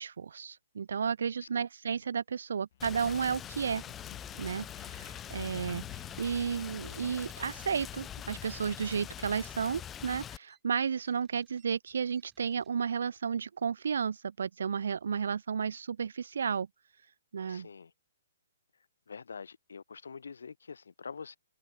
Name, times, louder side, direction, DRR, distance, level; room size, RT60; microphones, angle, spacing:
voice 1, 0.0-3.8 4.4-5.8 6.2-16.7 17.3-17.7, right 6 dB, 75° right, 0.5 m, -33 dB
sound 1, 2.7-8.9, left 12 dB, 50° left, 5.5 m, -54 dB
Rain, 2.8-10.4, left 10 dB, 15° left, 0.9 m, -43 dB
sound 2, 4.0-12.7, right 9 dB, 15° right, 6.1 m, -70 dB
voice 2, 17.5-17.9 19.1-21.4, left 5 dB, 80° left, 1.0 m, -45 dB
hypercardioid pair, 140°, 0 cm